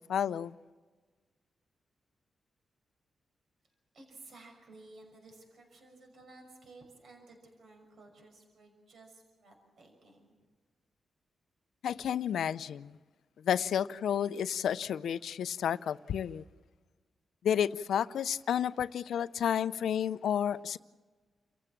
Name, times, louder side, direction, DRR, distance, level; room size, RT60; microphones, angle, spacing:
voice 1, 0.1-0.5 11.8-13.0 13.4-16.4 17.4-20.8, left 9 dB, 85° left, 0.6 m, -31 dB
voice 2, 3.6-10.4, right 2 dB, 65° right, 6.0 m, -55 dB
29.5 x 15.5 x 7.4 m
cardioid pair, 105°, 0 cm